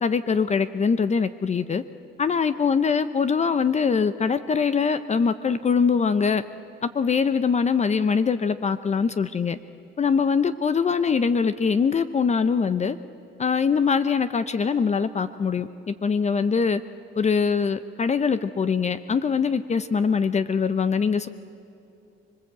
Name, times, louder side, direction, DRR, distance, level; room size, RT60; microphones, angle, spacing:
voice 1, 0.0-1.8 2.2-6.4 6.8-9.6 10.0-13.0 13.4-16.8 17.2-21.3, left 5 dB, 35° left, 12 dB, 0.7 m, -23 dB
25.5 x 22.0 x 8.1 m, 2.7 s
cardioid pair, 90°, 20 cm